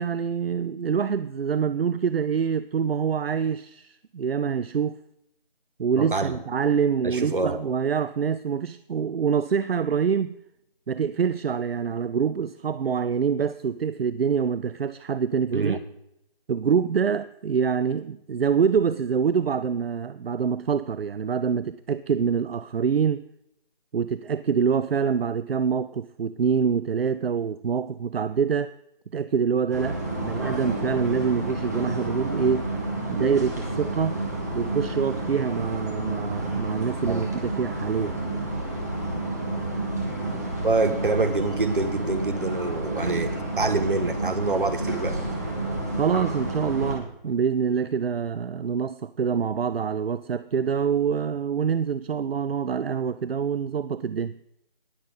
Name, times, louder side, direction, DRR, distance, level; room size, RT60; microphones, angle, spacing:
voice 1, 0.0-5.0 5.8-10.4 10.9-15.8 16.5-23.2 23.9-28.7 29.1-32.7 33.1-34.2 34.5-38.3 46.0-54.4, right 6 dB, 80° right, 0.5 m, -25 dB
voice 2, 6.0-6.3 7.0-7.6 15.5-15.8 37.1-37.2 40.6-45.2, right 3 dB, 60° right, 1.3 m, -26 dB
sound 1, 29.7-46.9, right 2 dB, 15° right, 1.3 m, -30 dB
19.5 x 6.7 x 4.0 m
figure-of-eight pair, 175°, 29 cm